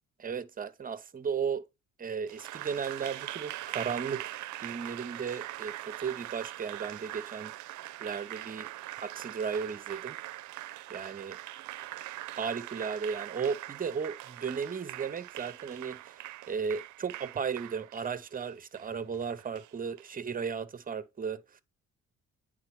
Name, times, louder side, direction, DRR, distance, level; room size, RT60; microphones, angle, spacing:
voice 1, 0.2-1.6 2.0-7.5 8.0-8.7 9.0-10.2 10.9-11.4 12.3-21.6, right 6 dB, 30° right, 0.7 m, -35 dB
Applause, 2.3-20.1, right 16 dB, 70° right, 0.5 m, -42 dB
8.8 x 3.8 x 3.0 m
cardioid pair, 90°, 30 cm